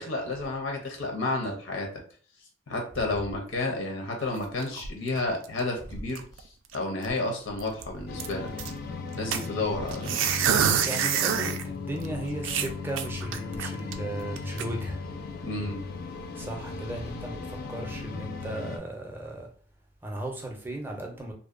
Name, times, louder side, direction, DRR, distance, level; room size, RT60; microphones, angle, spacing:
voice 1, 0.1-1.9 2.7-8.5 9.1-10.1 15.4-15.8, left 2 dB, 85° left, 0.6 m, -31 dB
sound 1, 4.2-5.6 5.9-6.4 6.7-6.8 7.0-7.2 7.6-8.7 9.3-11.6 12.0-12.1 12.4-13.9 14.4-14.6, right 8 dB, 85° right, 0.3 m, -27 dB
sound 2, 8.1-18.8, left 4 dB, 50° left, 0.3 m, -37 dB
voice 2, 10.8-15.0 16.4-17.4 17.7-19.5 20.0-21.3, right 1 dB, 10° right, 0.4 m, -36 dB
2.6 x 2.1 x 2.4 m
head